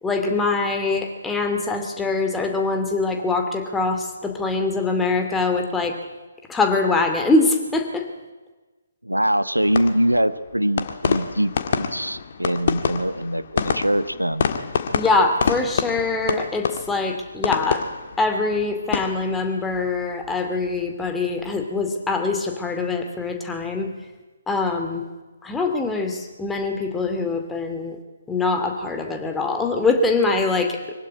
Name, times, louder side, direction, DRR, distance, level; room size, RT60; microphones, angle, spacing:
voice 1, 0.0-6.0 6.5-8.1 14.9-17.9 18.2-23.9 24.5-25.0 25.4-28.0 28.3-30.9, left 3 dB, 5° left, 4 dB, 2.4 m, -23 dB
voice 2, 9.0-14.4, equal, 85° right, 13 dB, 1.1 m, -23 dB
sound 1, 9.6-20.7 21.0-21.5, left 6 dB, 45° left, 1.7 m, -28 dB
24.0 x 16.0 x 9.9 m, 1.2 s
figure-of-eight pair, 135°, 0 cm